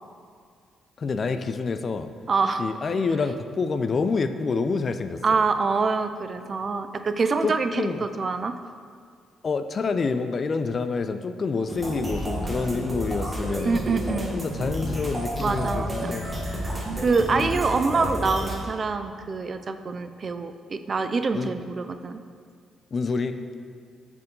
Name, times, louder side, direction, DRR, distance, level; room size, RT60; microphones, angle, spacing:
voice 1, 1.0-2.1 2.6-5.2 7.4-8.0 9.4-13.8 14.3-16.3 17.3-17.5 18.0-18.1 21.3-21.5 22.9-23.4, left 4 dB, 40° left, 9 dB, 0.3 m, -27 dB
voice 2, 2.3-2.6 5.2-8.5 13.6-14.4 15.4-16.2 17.0-22.2, right 4 dB, 40° right, 9 dB, 0.4 m, -25 dB
sound 1, 11.7-18.6, equal, 20° right, 1.4 m, -30 dB
7.8 x 4.5 x 3.7 m, 2.1 s
cardioid pair, 90°, 0 cm